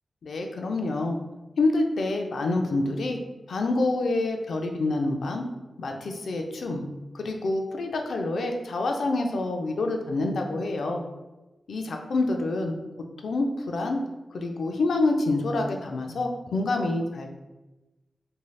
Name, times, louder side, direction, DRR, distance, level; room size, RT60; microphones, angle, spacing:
voice 1, 0.2-1.2 1.6-3.2 3.5-5.4 5.8-6.9 7.1-11.0 11.7-12.8 13.2-14.0 14.3-17.3, left 2 dB, 75° left, 3 dB, 0.4 m, -27 dB
3.1 x 2.7 x 2.2 m, 1.1 s
wide cardioid pair, 100°, 0 cm